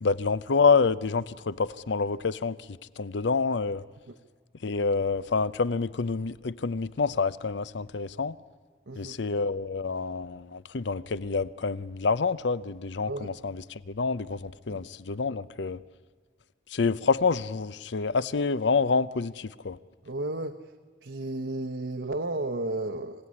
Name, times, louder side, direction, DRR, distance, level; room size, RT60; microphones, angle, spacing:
voice 1, 0.0-2.7 3.0-3.8 4.6-8.4 9.0-15.8 16.7-19.8, left 4 dB, 85° left, 18 dB, 0.6 m, -27 dB
voice 2, 8.9-9.2 13.1-13.3 14.7-14.8 20.0-20.6 21.0-23.3, right 2 dB, 85° right, 6 dB, 1.0 m, -33 dB
26.0 x 16.5 x 9.7 m, 1.5 s
head